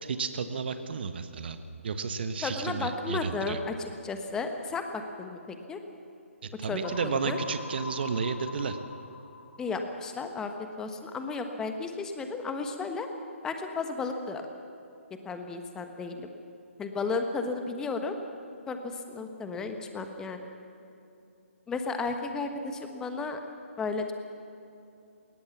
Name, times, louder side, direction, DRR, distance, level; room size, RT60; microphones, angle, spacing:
voice 1, 0.0-1.6 1.8-3.6 6.4-8.8, right 5 dB, 50° right, 9 dB, 1.4 m, -32 dB
voice 2, 2.4-5.8 6.7-6.9 7.2-7.4 9.6-10.5 10.8-13.1 13.4-14.4 15.2-16.3 16.8-18.2 18.7-20.4 21.7-23.4 23.8-24.1, left 4 dB, 10° left, 6 dB, 1.3 m, -33 dB
sound 1, 6.8-10.7, left 4 dB, 60° left, 1.5 m, -44 dB
20.0 x 19.5 x 7.1 m, 2.8 s
figure-of-eight pair, 140°, 7 cm